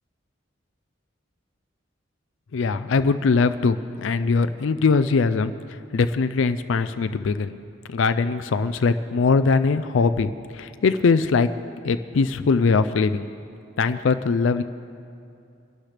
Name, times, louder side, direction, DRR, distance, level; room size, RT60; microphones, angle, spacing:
voice 1, 2.5-5.5 5.9-7.5 7.9-11.5 11.8-13.3 13.8-14.6, left 4 dB, 75° left, 11 dB, 0.4 m, -21 dB
22.5 x 12.0 x 3.4 m, 2.6 s
head